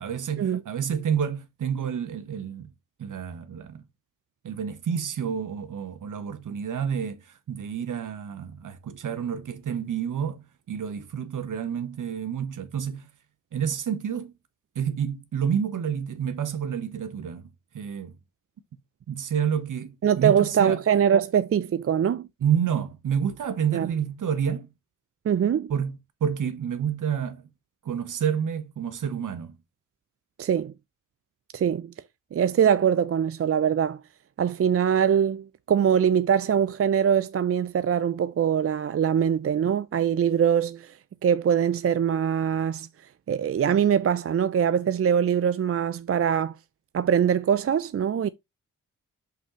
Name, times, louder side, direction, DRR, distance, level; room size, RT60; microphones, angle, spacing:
voice 1, 0.0-2.7 3.0-3.8 4.4-13.1 13.5-14.3 14.7-17.5 17.7-18.1 19.1-20.8 22.4-24.7 25.7-27.4 27.8-29.6, right 8 dB, 65° right, 1.2 m, -29 dB
voice 2, 20.0-22.3 23.7-23.9 25.2-25.7 30.4-30.7 31.5-31.9 32.3-34.0 34.4-40.9 41.2-42.9 43.3-46.6 46.9-48.3, right 8 dB, 40° right, 0.5 m, -23 dB
6.4 x 5.5 x 3.1 m
supercardioid pair, 50°, 34 cm